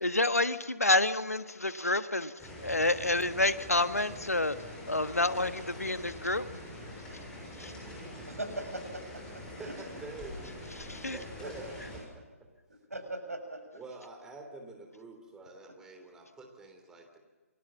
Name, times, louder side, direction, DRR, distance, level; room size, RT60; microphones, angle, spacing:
voice 1, 0.0-2.3 2.6-4.6 4.9-6.5 7.6-7.7 10.8-11.2, left 2 dB, 80° left, 12 dB, 1.4 m, -28 dB
sound 1, 2.4-12.0, left 1 dB, 10° left, 6.9 m, -44 dB
voice 2, 8.3-9.7 11.4-11.5 12.9-13.6, right 1 dB, 75° right, 7 dB, 6.5 m, -40 dB
voice 3, 9.6-10.5 11.0-12.2 13.7-17.2, right 2 dB, 5° right, 3 dB, 3.3 m, -47 dB
29.0 x 22.0 x 7.4 m, 1.4 s
figure-of-eight pair, 135°, 8 cm